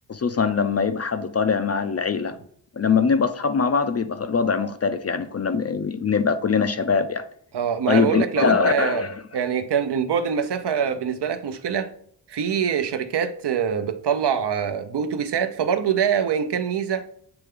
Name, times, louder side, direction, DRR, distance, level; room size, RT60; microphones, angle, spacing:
voice 1, 0.1-2.4 2.8-7.2 7.9-9.1, left 5 dB, 35° left, 0.4 m, -22 dB
voice 2, 7.5-9.0 9.3-11.9 12.3-17.1, right 7 dB, 65° right, 0.7 m, -24 dB
7.9 x 3.3 x 3.6 m
wide cardioid pair, 135°, 44 cm